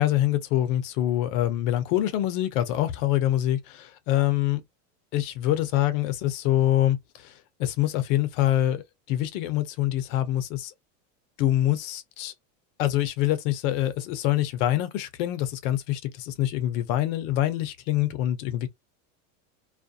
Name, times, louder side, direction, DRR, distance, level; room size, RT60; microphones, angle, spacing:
voice 1, 0.0-4.6 5.1-10.7 11.4-12.3 12.8-18.7, left 13 dB, 70° left, 0.8 m, -25 dB
2.4 x 2.1 x 2.6 m
supercardioid pair, 135°, 41 cm